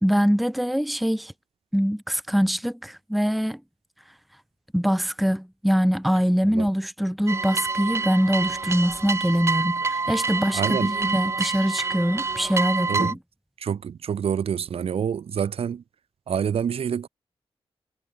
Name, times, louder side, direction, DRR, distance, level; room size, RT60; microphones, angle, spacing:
voice 1, 0.0-1.3 1.7-3.6 4.7-13.2, equal, ahead, 1.1 m, -23 dB
sound 1, 7.3-13.1, right 4 dB, 25° right, 0.6 m, -27 dB
voice 2, 10.5-10.9 12.9-13.2 13.6-15.8 16.3-17.1, right 8 dB, 75° right, 1.5 m, -27 dB
wide cardioid pair, 175°, 10 cm